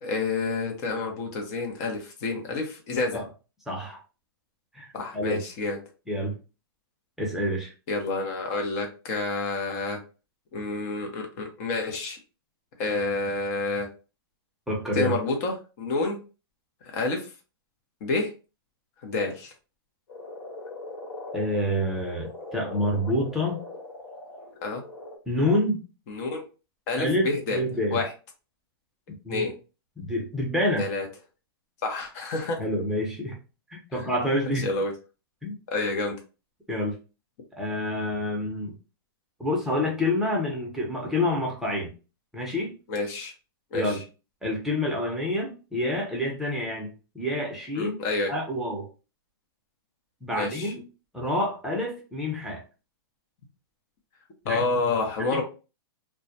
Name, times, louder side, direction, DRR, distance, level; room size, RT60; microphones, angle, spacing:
voice 1, 0.0-3.2 4.9-5.8 7.9-10.0 10.5-12.2 12.8-13.9 14.9-16.2 16.8-17.3 18.0-18.3 19.0-19.5 24.6-24.8 26.1-26.4 26.9-27.6 27.9-28.1 29.3-29.5 30.8-31.1 31.8-32.6 33.9-34.0 34.5-34.9 35.7-36.2 42.9-43.3 43.7-44.0 47.8-48.3 50.3-50.7 54.4-55.4, left 3 dB, 45° left, 3 dB, 0.7 m, -29 dB
voice 2, 3.7-4.0 4.7-4.9 5.1-5.4 6.1-6.3 7.2-7.7 14.7-15.2 21.3-23.6 25.3-25.8 27.0-28.0 29.1-29.5 30.0-30.9 32.6-33.4 33.7-34.7 35.4-35.5 36.7-36.9 37.6-38.7 39.4-41.9 42.3-42.7 43.7-44.0 44.4-47.9 48.3-48.9 50.2-50.8 51.1-52.6 54.5-54.6 55.2-55.4, left 1 dB, 5° right, -2 dB, 0.6 m, -27 dB
Frog, 20.1-25.2, left 2 dB, 70° left, 1.2 m, -41 dB
2.2 x 2.1 x 2.7 m, 0.33 s
hypercardioid pair, 130°, 13 cm